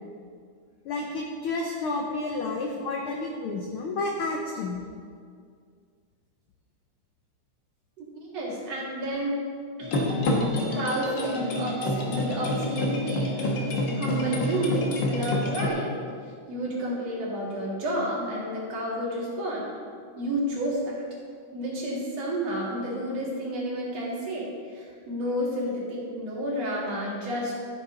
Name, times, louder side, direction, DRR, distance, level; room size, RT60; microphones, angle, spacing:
voice 1, 0.8-4.8 25.6-25.7, left 3 dB, 75° left, 0 dB, 1.2 m, -30 dB
voice 2, 8.0-9.5 9.8-10.1 10.8-13.6 13.9-15.9 16.5-19.7 20.2-21.0 21.5-27.5, right 1 dB, 60° right, -5 dB, 3.2 m, -31 dB
sound 1, 9.8-15.7, left 1 dB, 50° left, 1.4 m, -27 dB
13.0 x 7.0 x 3.9 m, 2.1 s
omnidirectional pair, 3.3 m